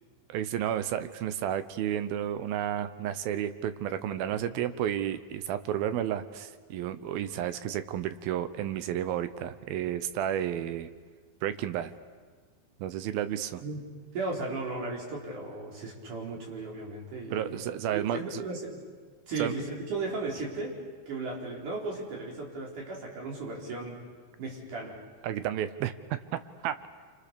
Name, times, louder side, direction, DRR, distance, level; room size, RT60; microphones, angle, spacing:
voice 1, 0.3-10.9 11.4-11.9 12.8-13.6 17.3-18.4 19.4-19.5 25.2-25.9 26.3-26.8, right 10 dB, 85° right, 12 dB, 2.8 m, -32 dB
voice 2, 14.1-17.6 17.9-18.8 19.3-20.8 21.1-24.0 24.4-25.0, right 3 dB, 55° right, -2 dB, 5.6 m, -36 dB
29.5 x 26.5 x 6.9 m, 1.5 s
omnidirectional pair, 4.2 m